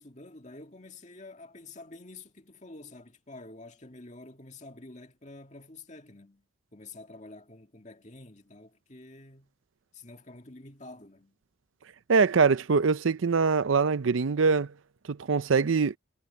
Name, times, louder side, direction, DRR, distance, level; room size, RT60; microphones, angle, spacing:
voice 1, 0.0-6.5 6.7-9.5 9.9-11.4, left 2 dB, 35° left, 2.1 m, -48 dB
voice 2, 12.1-14.7 15.1-16.0, right 5 dB, 85° right, 0.6 m, -23 dB
head